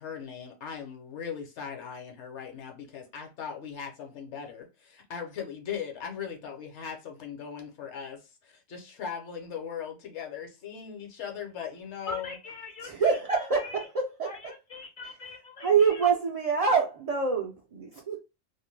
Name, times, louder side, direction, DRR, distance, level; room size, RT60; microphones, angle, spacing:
voice 1, 0.0-12.4, left 7 dB, 70° left, 1.0 m, -39 dB
voice 2, 12.1-13.8 14.3-15.7 16.0-16.1, left 3 dB, 50° left, 0.7 m, -42 dB
voice 3, 12.8-14.4 15.0-15.2 15.6-18.2, right 5 dB, 70° right, 0.3 m, -26 dB
2.5 x 2.1 x 3.1 m
omnidirectional pair, 1.3 m